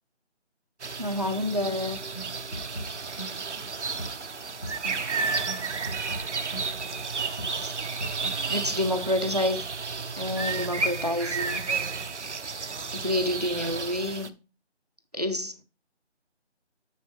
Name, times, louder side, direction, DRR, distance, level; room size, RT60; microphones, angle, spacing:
sound 1, 0.8-14.3, right 4 dB, 75° right, 0.8 m, -32 dB
voice 1, 1.0-2.0 7.6-7.7 8.5-9.6 10.2-11.9 12.9-14.3 15.1-15.6, left 1 dB, 35° right, 0.6 m, -28 dB
sound 2, 2.1-8.7, right 1 dB, 35° left, 0.8 m, -41 dB
9.6 x 5.9 x 3.0 m
figure-of-eight pair, 175°, 35 cm